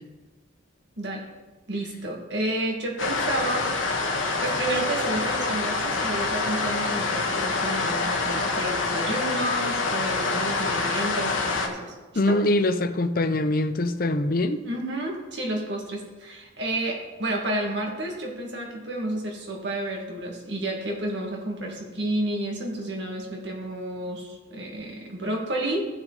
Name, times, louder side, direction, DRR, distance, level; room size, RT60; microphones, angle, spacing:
voice 1, 1.7-3.7 4.4-11.9 12.3-12.4 14.6-25.8, right 1 dB, 55° right, 0 dB, 1.9 m, -30 dB
sound 1, 3.0-11.7, left 3 dB, 75° left, 1.3 m, -26 dB
voice 2, 12.2-14.6, left 1 dB, 45° left, 10 dB, 0.5 m, -23 dB
15.5 x 6.0 x 4.0 m, 1.2 s
head